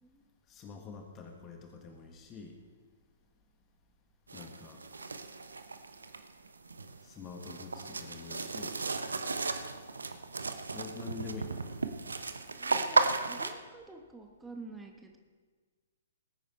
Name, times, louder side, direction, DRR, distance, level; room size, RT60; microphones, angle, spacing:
voice 1, 0.5-2.5 4.3-4.8 7.0-8.8 10.7-11.5, left 4 dB, 25° left, 3 dB, 1.7 m, -46 dB
sound 1, 4.3-13.5, right 3 dB, 75° right, 0.9 m, -34 dB
voice 2, 12.6-15.2, right 3 dB, 10° right, 3 dB, 1.3 m, -49 dB
20.5 x 9.1 x 4.3 m, 1.5 s
figure-of-eight pair, 115°, 0 cm